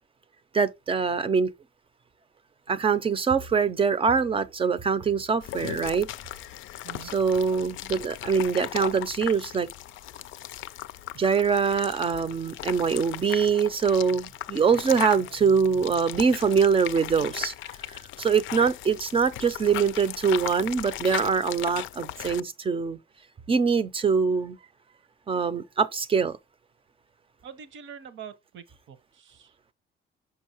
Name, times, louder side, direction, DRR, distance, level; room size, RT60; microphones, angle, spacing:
voice 1, 0.5-1.5 2.7-6.1 7.0-9.7 11.1-17.5 17.9-23.0 23.5-24.6 25.3-26.4, right 5 dB, 25° right, 0.5 m, -24 dB
sound 1, 5.4-22.4, left 13 dB, 80° left, 0.4 m, -37 dB
voice 2, 27.4-29.7, right 8 dB, 70° right, 0.9 m, -45 dB
5.9 x 5.5 x 2.9 m
cardioid pair, 150°, 20 cm